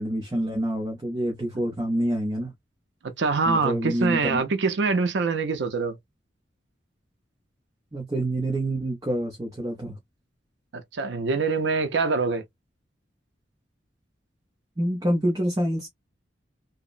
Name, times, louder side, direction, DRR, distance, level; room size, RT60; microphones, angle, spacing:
voice 1, 0.0-2.5 3.5-4.4 7.9-10.0 14.8-15.9, right 1 dB, 20° right, 0.6 m, -27 dB
voice 2, 3.2-6.0 10.7-12.4, right 4 dB, 80° right, 0.5 m, -24 dB
2.8 x 2.0 x 2.4 m
head